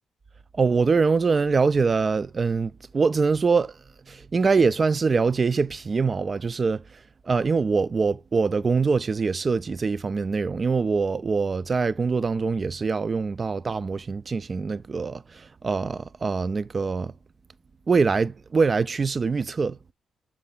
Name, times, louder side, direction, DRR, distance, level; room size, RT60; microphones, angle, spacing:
voice 1, 0.5-3.7 4.1-6.8 7.3-17.1 17.9-19.8, right 4 dB, 40° right, 0.4 m, -24 dB
6.8 x 3.7 x 5.6 m
supercardioid pair, 60°, 0 cm